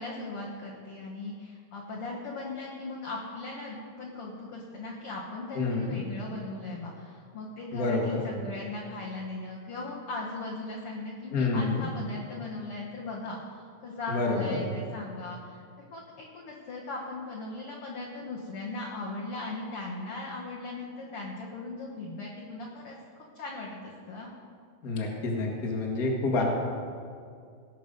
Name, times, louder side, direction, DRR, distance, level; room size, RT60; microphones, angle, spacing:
voice 1, 0.0-23.0 23.3-24.3, left 2 dB, 65° left, -3 dB, 1.4 m, -38 dB
voice 2, 5.5-5.9 7.7-8.2 11.3-11.8 14.1-14.6 24.8-26.4, left 3 dB, 40° left, -1 dB, 1.3 m, -28 dB
18.5 x 6.5 x 5.3 m, 2.3 s
omnidirectional pair, 4.3 m